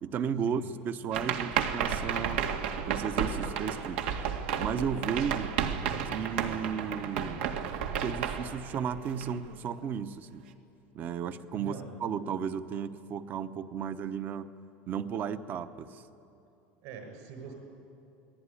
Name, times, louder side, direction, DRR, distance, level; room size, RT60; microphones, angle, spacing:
voice 1, 0.0-2.5 2.9-4.0 4.6-5.5 6.1-7.4 8.0-10.5 10.9-11.7 12.0-14.5 14.9-16.0, right 7 dB, 30° right, 12 dB, 0.9 m, -34 dB
sound 1, 1.1-9.6, right 7 dB, 85° right, 2.0 m, -32 dB
voice 2, 11.5-12.0 16.8-17.5, right 6 dB, 60° right, 5 dB, 6.7 m, -44 dB
29.0 x 19.5 x 10.0 m, 2.8 s
cardioid pair, 160°, 6 cm